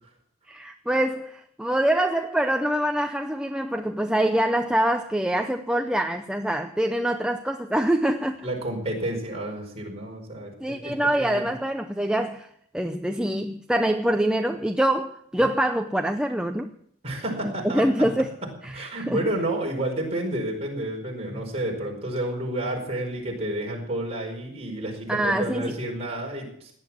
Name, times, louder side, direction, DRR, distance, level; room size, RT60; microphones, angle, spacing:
voice 1, 0.5-8.5 10.6-12.5 12.7-16.7 17.7-18.3 18.6-19.2 25.1-25.7, right 1 dB, 5° right, 0.6 m, -25 dB
voice 2, 8.4-11.5 17.0-18.1 18.7-26.7, right 1 dB, 30° right, 5.0 m, -30 dB
18.0 x 10.5 x 7.6 m
head